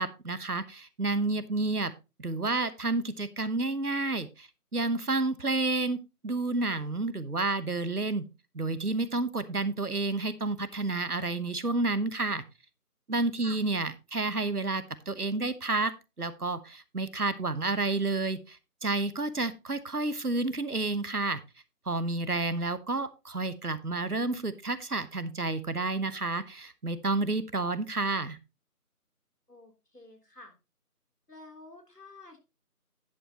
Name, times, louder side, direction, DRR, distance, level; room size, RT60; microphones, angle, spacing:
voice 1, 0.0-1.9 2.2-8.2 8.5-12.4 13.1-21.4 21.9-28.4, right 3 dB, 70° right, 14 dB, 1.2 m, -30 dB
voice 2, 29.5-30.5 31.3-32.4, left 2 dB, 80° left, 4 dB, 3.3 m, -50 dB
10.0 x 9.1 x 2.8 m, 0.27 s
figure-of-eight pair, 180°, 47 cm